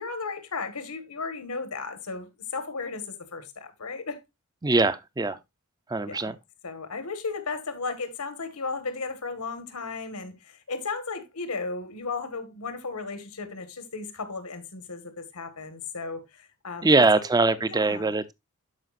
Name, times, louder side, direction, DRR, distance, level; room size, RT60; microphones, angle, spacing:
voice 1, 0.0-4.2 6.1-6.4 6.6-17.3 17.7-18.1, left 4 dB, 85° left, 1.6 m, -35 dB
voice 2, 4.6-5.4 5.9-6.4 16.8-18.3, right 3 dB, 15° right, 0.5 m, -22 dB
12.5 x 5.0 x 2.5 m
head